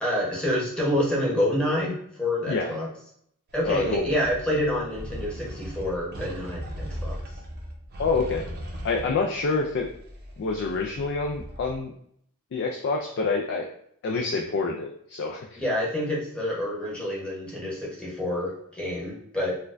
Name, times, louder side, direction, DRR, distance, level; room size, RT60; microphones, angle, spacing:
voice 1, 0.0-2.9 3.5-7.2 15.5-19.6, left 1 dB, 5° left, -5 dB, 0.9 m, -27 dB
sound 1, 3.5-11.7, equal, 45° right, 0.6 m, -38 dB
voice 2, 3.7-4.2 8.0-8.4 8.8-9.9 10.4-11.9 12.5-13.7 14.0-15.6, left 4 dB, 55° left, 1 dB, 0.4 m, -27 dB
4.3 x 2.2 x 2.5 m, 0.68 s
head